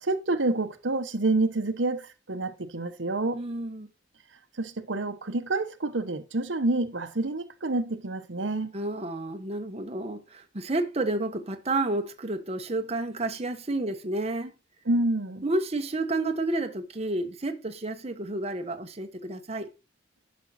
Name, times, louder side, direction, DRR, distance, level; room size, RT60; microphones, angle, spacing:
voice 1, 0.0-3.4 4.6-8.7 14.9-15.4, right 2 dB, 85° right, 1.1 m, -28 dB
voice 2, 3.3-3.9 8.7-14.5 15.4-19.7, right 2 dB, 35° right, 1.1 m, -30 dB
11.5 x 5.4 x 4.2 m
head